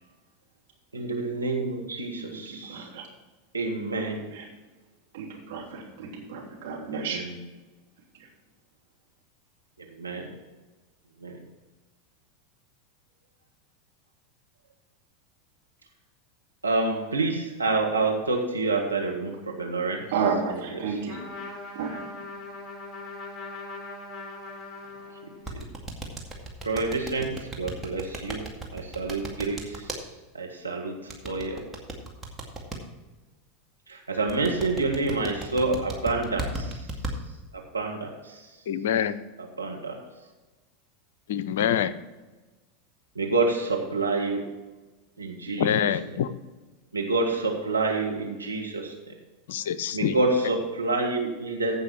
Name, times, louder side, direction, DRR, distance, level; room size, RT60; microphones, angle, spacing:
voice 1, 0.9-2.9 3.5-4.2 7.1-7.3 10.0-10.3 11.2-11.4 16.6-20.0 25.5-25.6 26.6-28.4 28.7-29.8 30.3-30.9 31.2-31.6 33.9-36.8 37.7-38.4 39.6-40.0 43.1-44.4 45.2-45.7 46.9-48.9 49.9-51.8, right 3 dB, 85° right, 0 dB, 1.6 m, -27 dB
voice 2, 2.2-3.1 4.1-4.5 5.1-7.3 8.1-8.3 20.1-21.2 21.7-22.0, right 5 dB, 60° right, -2 dB, 3.2 m, -32 dB
Trumpet, 21.1-25.6, left 2 dB, 20° left, 3.1 m, -40 dB
sound 1, 25.5-30.0 31.1-32.8 34.3-37.1, right 3 dB, 15° right, 2.1 m, -35 dB
voice 3, 38.7-39.2 41.3-41.9 45.6-46.3 49.5-50.2, left 9 dB, 65° left, 15 dB, 0.6 m, -25 dB
15.5 x 5.7 x 4.5 m, 1.2 s
figure-of-eight pair, 85°, 0 cm